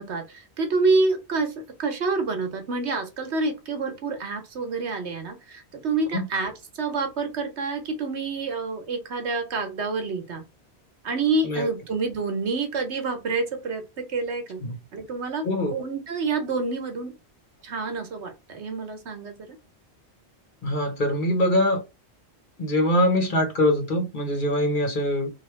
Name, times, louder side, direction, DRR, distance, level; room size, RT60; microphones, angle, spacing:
voice 1, 0.0-10.4 11.0-14.6 14.9-17.1 17.6-19.5, right 3 dB, 75° right, 1.3 m, -28 dB
voice 2, 15.4-15.8 20.6-21.8 22.6-25.3, left 1 dB, 50° left, 1.1 m, -23 dB
3.3 x 2.8 x 4.4 m
omnidirectional pair, 1.1 m